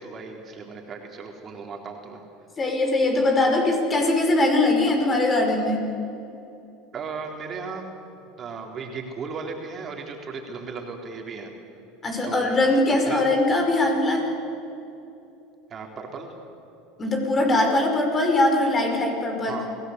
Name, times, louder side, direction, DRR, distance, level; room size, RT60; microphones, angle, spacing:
voice 1, 0.0-2.2 6.9-7.9 8.4-11.5 12.3-12.6 13.1-13.3 15.7-16.3 19.5-19.8, right 4 dB, 35° right, 2 dB, 3.7 m, -36 dB
voice 2, 2.6-5.8 12.0-14.3 17.0-19.6, left 2 dB, 25° left, 3 dB, 5.5 m, -21 dB
27.5 x 17.5 x 8.2 m, 2.8 s
hypercardioid pair, 90°, 0 cm